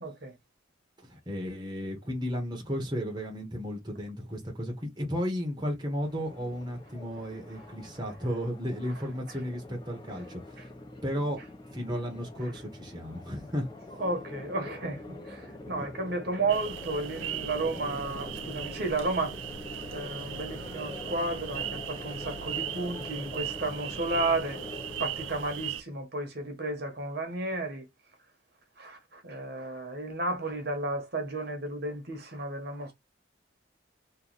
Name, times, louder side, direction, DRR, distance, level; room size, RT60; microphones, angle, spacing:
voice 1, 0.0-0.3 14.0-19.4 19.9-24.6 25.0-27.8 28.8-32.9, right 2 dB, 55° right, 1.2 m, -33 dB
voice 2, 1.0-10.7 11.0-11.4 11.7-14.0 15.7-15.9, equal, 20° right, 1.1 m, -34 dB
sound 1, 6.0-25.8, left 2 dB, 20° left, 0.7 m, -44 dB
sound 2, 16.5-25.8, right 10 dB, 75° right, 0.5 m, -38 dB
3.1 x 2.5 x 3.9 m
head